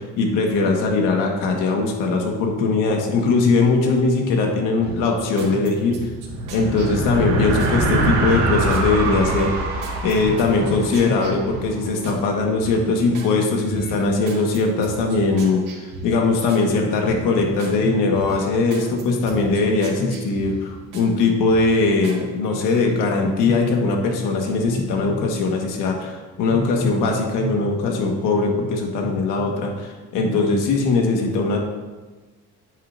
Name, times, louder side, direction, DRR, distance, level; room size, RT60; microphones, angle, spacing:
voice 1, 0.0-6.0 6.5-9.7 10.0-31.6, left 3 dB, 90° left, 2 dB, 1.5 m, -20 dB
sound 1, 4.8-7.8 8.1-8.9 9.2-12.2 12.6-13.3 13.7-16.7 17.0-17.8 18.1-21.1 21.5-22.2 22.6-22.8, right 4 dB, 80° right, 1.9 m, -38 dB
sound 2, 6.1-11.8, right 2 dB, 60° right, 2.3 m, -24 dB
9.6 x 9.3 x 2.6 m, 1.3 s
cardioid pair, 125°, 31 cm